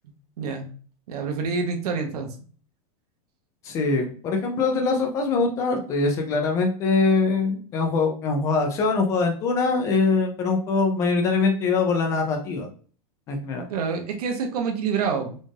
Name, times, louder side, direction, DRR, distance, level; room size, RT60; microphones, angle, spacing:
voice 1, 0.4-0.7 1.1-2.3 13.7-15.4, right 5 dB, 80° right, 4 dB, 1.0 m, -27 dB
voice 2, 3.6-12.7 13.3-13.7, left 4 dB, 15° left, 4 dB, 0.4 m, -23 dB
4.1 x 2.4 x 3.2 m, 0.42 s
supercardioid pair, 180°, 19 cm